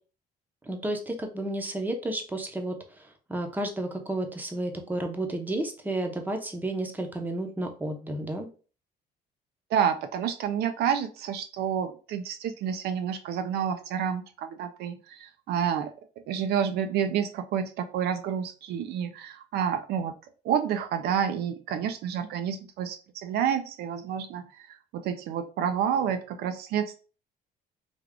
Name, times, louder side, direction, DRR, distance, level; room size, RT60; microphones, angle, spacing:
voice 1, 0.6-8.5, right 1 dB, 10° right, 4 dB, 0.7 m, -32 dB
voice 2, 9.7-15.9 16.3-20.1 20.4-27.0, right 8 dB, 75° right, 8 dB, 0.4 m, -29 dB
3.4 x 2.3 x 3.6 m, 0.37 s
cardioid pair, 110°, 17 cm